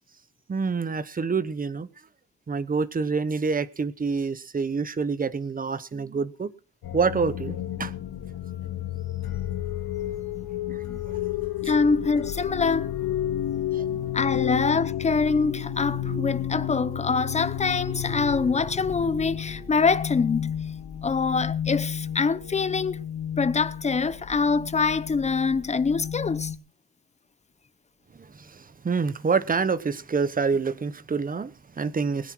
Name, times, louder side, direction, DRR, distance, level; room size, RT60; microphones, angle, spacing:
voice 1, 0.5-1.9 2.5-6.5 6.9-7.9 10.7-11.2 13.7-14.1 28.1-32.3, right 5 dB, 20° right, 1.0 m, -27 dB
sound 1, 6.8-26.6, left 10 dB, 65° left, 2.8 m, -31 dB
voice 2, 11.6-12.9 14.1-20.5 21.0-23.0 23.4-26.5, left 4 dB, 15° left, 0.8 m, -24 dB
20.5 x 9.9 x 4.6 m
cardioid pair, 140°, 39 cm